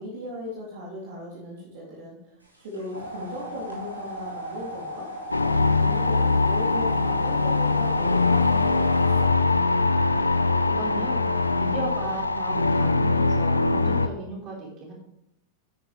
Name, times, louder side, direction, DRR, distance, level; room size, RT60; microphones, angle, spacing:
voice 1, 0.0-5.1 5.7-9.3, left 1 dB, 55° right, -5 dB, 3.5 m, -38 dB
sound 1, 2.5-9.2, equal, 85° right, 3.7 m, -36 dB
sound 2, 5.3-14.1, left 3 dB, 80° left, 0.7 m, -22 dB
voice 2, 10.4-14.9, right 2 dB, 35° right, -2 dB, 5.1 m, -36 dB
12.5 x 9.6 x 3.6 m, 0.81 s
figure-of-eight pair, 90°, 0 cm